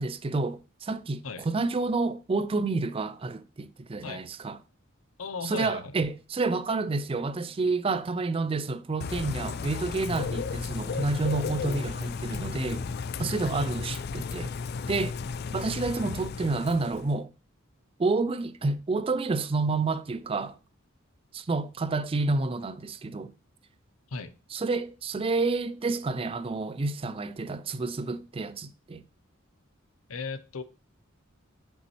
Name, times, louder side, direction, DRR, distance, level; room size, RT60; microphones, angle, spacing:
voice 1, 0.0-4.6 5.4-12.9 13.2-14.5 14.9-15.2 15.5-17.3 18.0-20.6 21.3-23.3 24.5-29.0, right 3 dB, 25° right, 0.4 m, -29 dB
voice 2, 5.2-5.9 13.5-13.7 24.1-24.3 30.1-30.6, left 4 dB, 80° left, 0.7 m, -36 dB
Bird / Rain, 9.0-17.2, left 5 dB, 50° left, 0.4 m, -34 dB
6.1 x 5.3 x 3.1 m
head